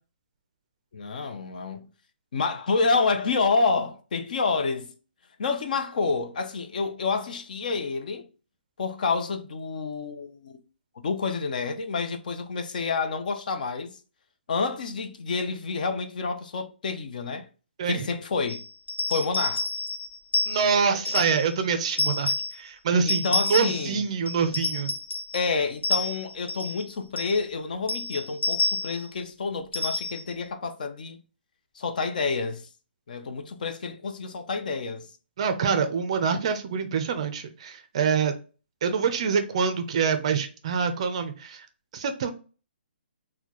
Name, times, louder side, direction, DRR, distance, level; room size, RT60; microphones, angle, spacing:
voice 1, 0.9-1.9 2.3-4.9 5.4-8.3 8.8-10.6 11.0-14.0 14.5-17.5 17.9-18.6 19.1-19.7 23.0-24.0 25.3-31.2 31.8-32.7 33.1-35.1, left 4 dB, 45° left, 0.5 m, -28 dB
sound 1, 18.5-21.5 21.9-22.6 23.1-23.9 24.3-25.5 25.8-26.8 27.2-27.4 27.9-29.1 29.7-30.3, left 2 dB, 90° left, 0.8 m, -29 dB
voice 2, 20.5-24.9 35.4-38.3 38.8-41.7 41.9-42.3, right 6 dB, 35° right, 0.4 m, -26 dB
4.2 x 2.2 x 2.9 m
hypercardioid pair, 170°, 6 cm